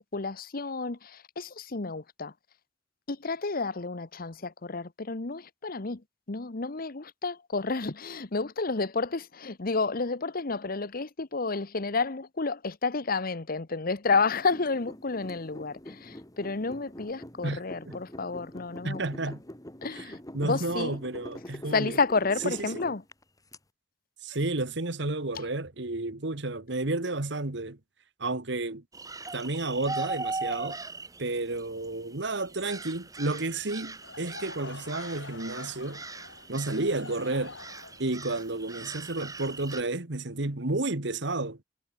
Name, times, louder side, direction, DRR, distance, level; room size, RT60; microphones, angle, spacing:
voice 1, 0.0-2.3 3.1-6.0 6.3-19.1 19.8-20.2 20.4-21.0 21.7-23.0, left 4 dB, 50° left, 1.1 m, -30 dB
sound 1, 14.1-23.6, left 1 dB, 20° left, 2.7 m, -45 dB
voice 2, 18.8-19.4 20.0-20.1 20.3-22.0 22.4-22.7 24.2-27.8 28.2-28.8 29.3-30.8 31.2-36.0 36.5-37.5 38.0-41.6, right 2 dB, 65° right, 1.8 m, -31 dB
sound 2, 28.9-39.8, right 3 dB, 20° right, 3.6 m, -40 dB
Laughter / Crowd, 33.9-39.9, left 3 dB, 75° left, 6.4 m, -47 dB
head